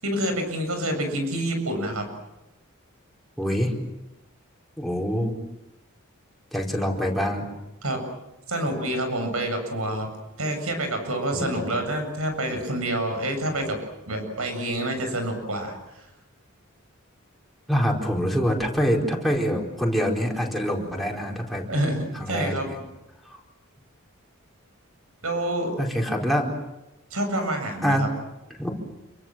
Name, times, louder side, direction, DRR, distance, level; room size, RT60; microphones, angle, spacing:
voice 1, 0.0-2.0 7.8-8.0 8.5-10.1 10.4-13.8 14.1-16.1 21.7-22.7 25.2-25.8 27.1-28.1, right 1 dB, 85° right, 6 dB, 7.4 m, -27 dB
voice 2, 3.4-3.7 4.8-5.4 6.5-7.5 11.3-11.7 17.7-21.6 22.1-22.8 23.3-23.4 25.8-26.5 27.8-28.0 28.6-28.7, equal, ahead, -1 dB, 4.5 m, -25 dB
28.0 x 24.0 x 7.6 m, 0.94 s
head